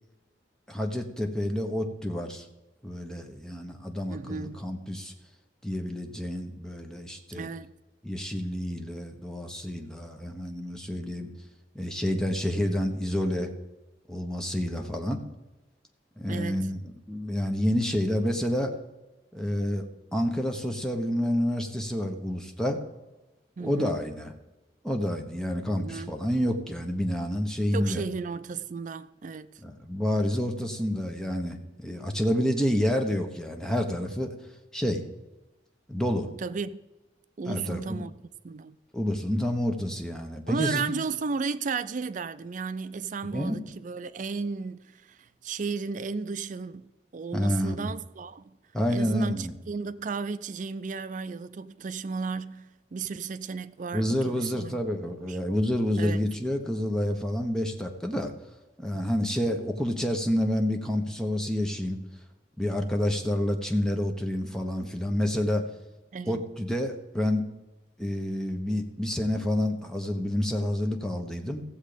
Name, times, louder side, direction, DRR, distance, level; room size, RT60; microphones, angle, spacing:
voice 1, 0.7-2.5 2.8-5.1 5.6-7.5 8.0-11.3 11.7-13.5 14.1-15.2 16.2-16.8 17.1-18.7 19.3-19.9 20.1-22.8 23.6-24.3 24.8-28.0 29.6-34.3 34.7-35.0 35.9-36.3 37.5-38.1 38.9-40.9 43.3-43.6 47.3-47.9 48.7-49.6 53.9-58.3 58.8-62.0 62.6-65.7 66.3-67.4 68.0-71.6, left 1 dB, 5° left, 1.0 m, -29 dB
voice 2, 4.1-4.6 7.3-7.7 16.3-16.7 23.6-24.0 25.8-26.1 27.7-29.6 36.4-36.8 37.4-38.1 38.4-38.8 40.5-48.6 48.9-55.4 56.0-56.2 66.1-66.4, right 4 dB, 45° right, 0.4 m, -34 dB
15.5 x 7.3 x 5.1 m
head